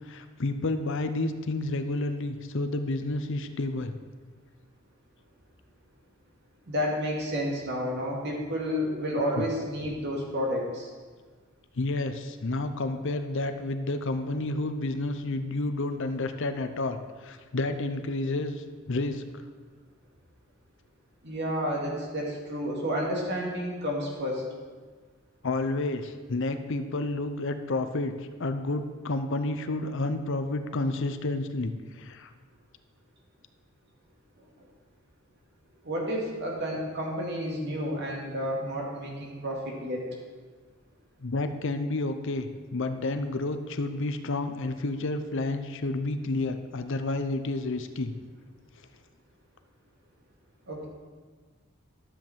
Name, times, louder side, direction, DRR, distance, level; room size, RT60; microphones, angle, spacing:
voice 1, 0.1-4.0 9.4-9.5 11.8-19.2 25.4-32.3 41.2-48.1, left 2 dB, 65° left, 8 dB, 0.7 m, -30 dB
voice 2, 6.7-10.9 21.2-24.4 35.8-40.1 50.7-50.9, equal, 55° right, -2 dB, 2.3 m, -30 dB
12.5 x 7.5 x 4.5 m, 1.5 s
head